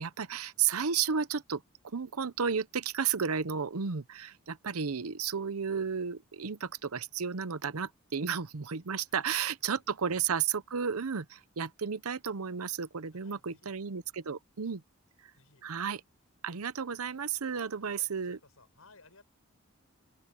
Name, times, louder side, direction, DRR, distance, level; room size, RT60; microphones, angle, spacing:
voice 1, 0.0-14.8 15.2-15.3 15.6-16.0 16.4-18.4, right 6 dB, 90° right, 0.8 m, -33 dB
voice 2, 13.1-13.7 15.3-15.6 17.8-19.2, left 3 dB, 75° left, 7.3 m, -60 dB
open air
head